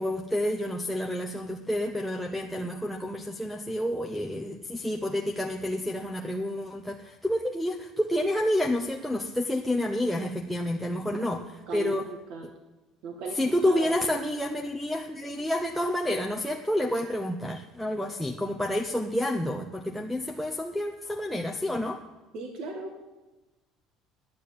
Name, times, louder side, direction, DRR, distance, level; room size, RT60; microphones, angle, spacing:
voice 1, 0.0-11.4 11.7-12.1 13.3-22.0, left 1 dB, ahead, 1 dB, 0.6 m, -29 dB
voice 2, 11.1-12.5 13.0-13.4 13.7-14.3 21.7-21.8 22.3-23.1, right 4 dB, 60° right, 2 dB, 1.8 m, -38 dB
10.5 x 10.5 x 8.4 m, 1.1 s
cardioid pair, 155°, 0 cm